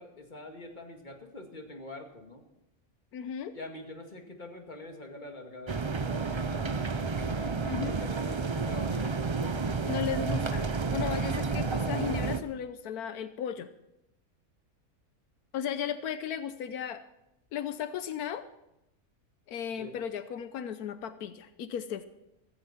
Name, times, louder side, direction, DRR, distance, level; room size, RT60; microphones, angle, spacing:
voice 1, 0.0-2.5 3.5-9.6 19.8-20.0, left 1 dB, 30° left, 2 dB, 2.3 m, -45 dB
voice 2, 3.1-3.6 7.6-8.0 9.9-13.7 15.5-17.0 17.5-18.5 19.5-22.1, left 9 dB, 85° left, 11 dB, 1.3 m, -35 dB
sound 1, 5.7-12.4, right 4 dB, 45° right, 0.3 m, -30 dB
16.5 x 15.0 x 4.4 m, 0.87 s
omnidirectional pair, 1.6 m